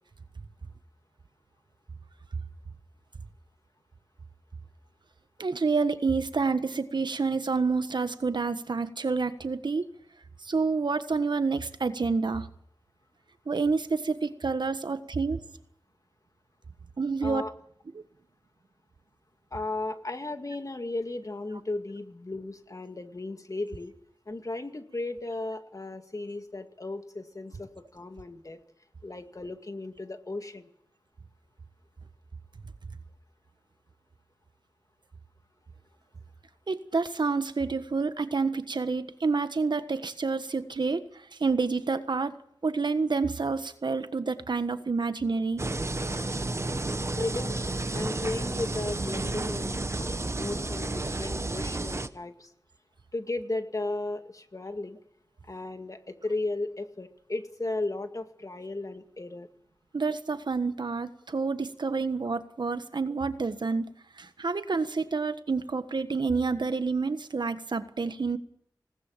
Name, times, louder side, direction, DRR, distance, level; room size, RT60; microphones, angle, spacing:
voice 1, 5.4-9.9 10.4-12.5 13.5-15.4 17.0-17.4 17.9-18.0 36.7-42.3 42.6-45.6 59.9-63.9 64.2-68.4, right 4 dB, 75° right, 11 dB, 1.5 m, -28 dB
voice 2, 19.5-23.9 24.3-28.6 29.0-30.7 47.2-47.6 47.9-52.5 53.1-55.0 55.4-59.5, left 2 dB, 45° left, 8 dB, 2.2 m, -35 dB
sound 1, 45.6-52.1, right 2 dB, 35° right, 1.2 m, -31 dB
20.5 x 18.5 x 7.5 m, 0.70 s
wide cardioid pair, 50°, 8 cm